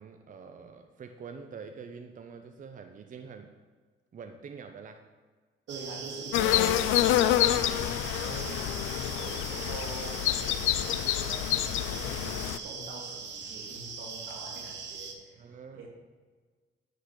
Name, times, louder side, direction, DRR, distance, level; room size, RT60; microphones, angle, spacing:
voice 1, 0.0-3.5 4.1-5.1 7.7-7.8 8.9-9.1 15.3-15.9, right 5 dB, 40° right, 6 dB, 0.7 m, -46 dB
sound 1, 5.7-15.1, right 5 dB, 65° right, 1.2 m, -40 dB
voice 2, 5.7-15.9, right 3 dB, 85° right, -2 dB, 2.6 m, -44 dB
sound 2, 6.3-12.6, left 13 dB, 85° left, 0.4 m, -27 dB
10.0 x 4.0 x 6.6 m, 1.5 s
cardioid pair, 90°, 20 cm